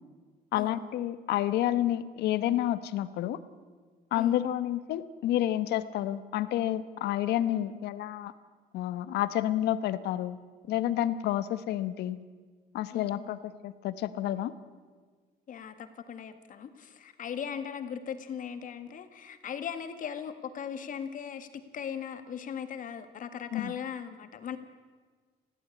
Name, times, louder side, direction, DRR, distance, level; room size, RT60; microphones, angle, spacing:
voice 1, 0.5-3.4 4.1-8.3 8.7-10.4 10.7-12.2 12.7-14.5 23.5-23.7, left 12 dB, 80° left, 14 dB, 1.1 m, -29 dB
voice 2, 12.9-13.3 15.5-24.6, left 8 dB, 50° left, 9 dB, 1.8 m, -39 dB
20.5 x 15.0 x 8.5 m, 1.5 s
cardioid pair, 110°, 17 cm